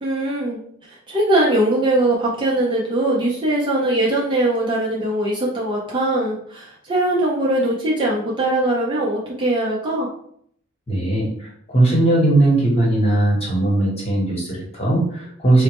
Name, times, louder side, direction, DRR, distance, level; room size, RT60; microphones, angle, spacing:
voice 1, 0.0-10.1, right 1 dB, 25° right, -4 dB, 0.6 m, -21 dB
voice 2, 10.9-15.6, right 2 dB, 30° left, -4 dB, 1.1 m, -18 dB
3.9 x 2.1 x 3.0 m, 0.66 s
head